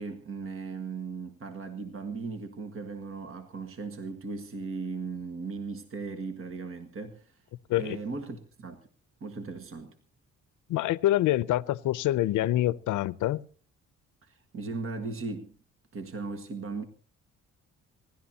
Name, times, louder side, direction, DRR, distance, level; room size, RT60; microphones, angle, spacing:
voice 1, 0.0-7.4 7.7-8.8 9.2-9.9 14.2-15.5 15.9-16.8, right 4 dB, 45° right, 1.6 m, -37 dB
voice 2, 10.7-13.4, left 14 dB, 80° left, 0.6 m, -26 dB
27.0 x 12.0 x 2.8 m
cardioid pair, 90°, 30 cm